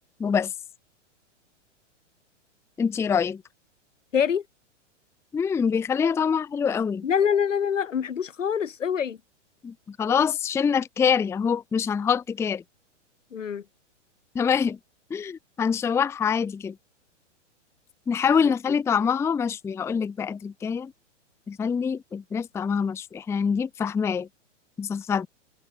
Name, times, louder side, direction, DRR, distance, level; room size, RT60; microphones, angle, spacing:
voice 1, 0.2-0.5 2.8-3.4 5.3-7.1 9.6-12.6 14.3-14.8 15.1-16.8 18.1-20.9 21.5-24.3 24.8-25.3, left 6 dB, 5° left, 0.6 m, -25 dB
voice 2, 4.1-4.4 7.0-9.2 13.3-13.6, left 7 dB, 85° left, 2.8 m, -25 dB
open air
hypercardioid pair, 125°, 37 cm